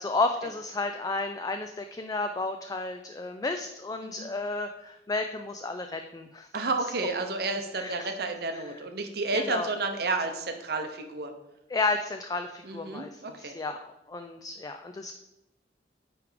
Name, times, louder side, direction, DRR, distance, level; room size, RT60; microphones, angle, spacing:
voice 1, 0.0-6.5 7.8-8.1 8.5-8.6 9.3-9.7 11.7-13.8 14.1-15.1, left 3 dB, 20° left, 6 dB, 0.3 m, -32 dB
voice 2, 6.5-11.3 12.6-13.6, right 3 dB, 60° right, 6 dB, 0.8 m, -31 dB
9.5 x 3.4 x 5.0 m, 0.95 s
head